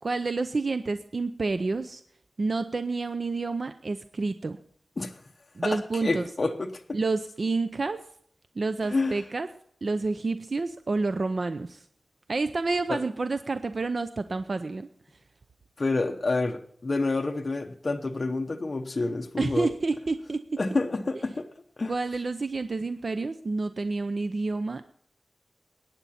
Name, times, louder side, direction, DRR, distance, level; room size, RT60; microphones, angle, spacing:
voice 1, 0.0-2.0 2.4-4.6 5.6-6.2 6.9-8.0 8.6-9.5 9.8-11.8 12.3-14.9 19.4-20.6 21.9-24.9, right 3 dB, 55° right, 0.6 m, -29 dB
voice 2, 5.6-7.0 8.9-9.2 12.9-13.0 15.8-19.7 20.6-21.5 21.8-21.9, left 3 dB, 45° left, 0.9 m, -28 dB
22.0 x 9.6 x 4.3 m
wide cardioid pair, 100°, 0 cm